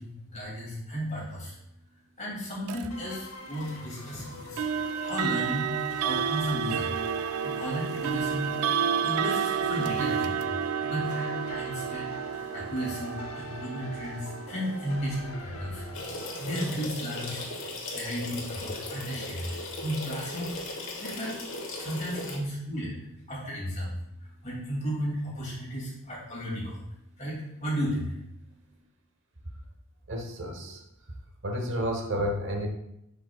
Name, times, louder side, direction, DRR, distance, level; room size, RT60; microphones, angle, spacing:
voice 1, 0.0-1.6 2.2-4.6 5.0-6.9 7.4-10.5 10.8-15.9 16.4-21.3 21.7-23.0 23.3-26.9 27.2-28.2, equal, 35° left, -5 dB, 2.5 m, -34 dB
sound 1, 2.7-2.9 4.6-17.4, right 7 dB, 90° right, 0.3 m, -31 dB
sound 2, 2.9-16.6, left 3 dB, 90° left, 0.8 m, -45 dB
sound 3, 15.9-22.4, left 2 dB, 65° left, 1.4 m, -37 dB
voice 2, 30.1-30.8 31.4-32.7, equal, 60° right, 3 dB, 1.1 m, -31 dB
10.0 x 5.2 x 2.4 m, 0.83 s
head